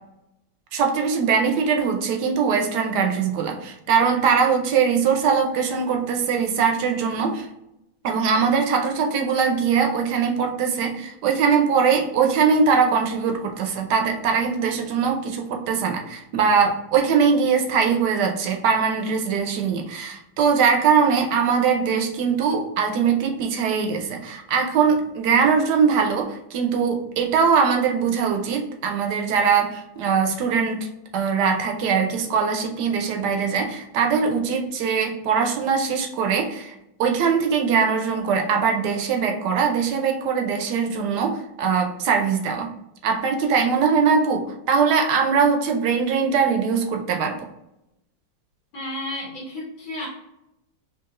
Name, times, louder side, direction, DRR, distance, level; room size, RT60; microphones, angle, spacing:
voice 1, 0.7-7.5 8.0-30.9 31.1-36.7 37.0-42.7 43.0-47.5, right 6 dB, 70° right, 3 dB, 1.1 m, -21 dB
voice 2, 48.7-50.1, left 1 dB, 75° left, -5 dB, 1.6 m, -32 dB
4.7 x 2.7 x 2.5 m, 0.87 s
omnidirectional pair, 2.0 m